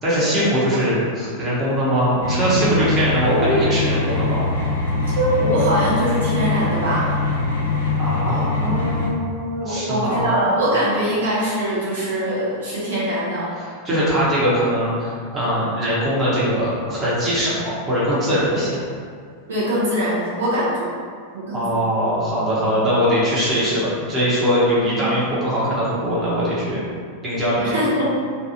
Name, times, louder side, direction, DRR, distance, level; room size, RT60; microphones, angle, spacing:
voice 1, 0.0-4.4 8.0-10.3 13.6-18.7 21.5-26.8 27.2-27.8, equal, 20° right, -9 dB, 0.9 m, -21 dB
sound 1, 2.2-9.1, left 3 dB, 70° left, 0.5 m, -23 dB
voice 2, 5.2-7.2 9.6-13.5 18.5-18.6 19.5-20.9 21.3-21.7 22.6-22.7 24.8-25.1 27.6-28.1, equal, 65° right, -9 dB, 0.7 m, -22 dB
2.5 x 2.3 x 2.8 m, 2.1 s
figure-of-eight pair, 90°, 0 cm